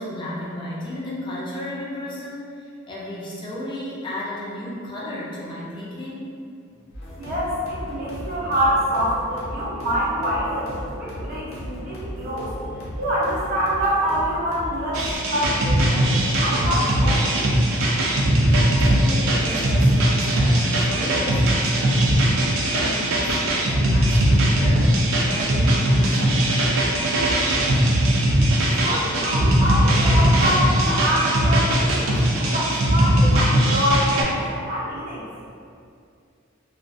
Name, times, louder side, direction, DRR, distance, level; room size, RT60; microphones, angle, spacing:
voice 1, 0.0-6.3 18.4-22.3 22.7-25.0 25.3-26.5, left 1 dB, 25° left, -6 dB, 0.3 m, -33 dB
sound 1, 6.9-15.2, equal, 85° left, 0.7 m, -36 dB
voice 2, 7.2-12.5 13.0-17.5 28.8-35.3, equal, 45° right, -7 dB, 0.6 m, -25 dB
sound 2, 14.9-34.2, right 1 dB, 90° right, 0.4 m, -19 dB
2.3 x 2.1 x 2.5 m, 2.4 s
head